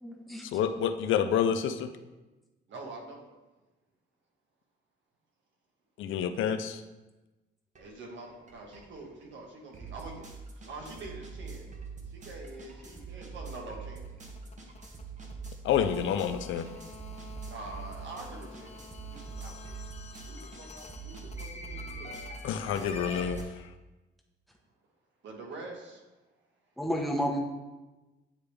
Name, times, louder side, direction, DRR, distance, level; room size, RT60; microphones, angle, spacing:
voice 1, 0.0-0.5 26.8-27.4, equal, ahead, 1 dB, 1.1 m, -31 dB
voice 2, 0.5-1.9 6.0-6.8 15.6-16.7 22.4-23.5, left 8 dB, 80° left, 9 dB, 0.5 m, -28 dB
voice 3, 2.7-3.3 7.8-10.2 10.7-14.1 17.5-19.7 20.2-22.1 25.2-26.0, right 2 dB, 70° right, 0 dB, 1.5 m, -45 dB
sound 1, 7.7-7.9 8.2-23.4, right 5 dB, 35° right, 1.1 m, -44 dB
sound 2, 13.8-23.4, left 4 dB, 35° left, 0.7 m, -47 dB
9.8 x 3.4 x 3.4 m, 1.1 s
cardioid pair, 90°, 20 cm